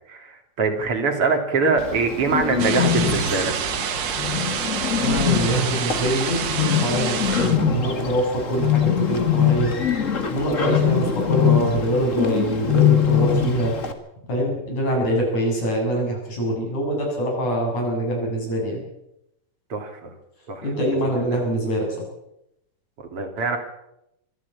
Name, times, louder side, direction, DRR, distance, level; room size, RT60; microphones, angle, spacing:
voice 1, 0.1-3.5 19.7-20.1 20.5-21.4 23.0-23.6, right 4 dB, 45° right, 4 dB, 4.0 m, -24 dB
Bird, 1.8-13.9, left 8 dB, 30° left, 1.7 m, -23 dB
sound 1, 2.6-7.6, right 9 dB, 80° right, 3.1 m, -28 dB
voice 2, 5.0-9.7 10.3-13.7 14.3-18.8 20.6-21.9, equal, 65° left, 0 dB, 8.7 m, -24 dB
24.5 x 13.5 x 8.6 m, 0.83 s
omnidirectional pair, 3.6 m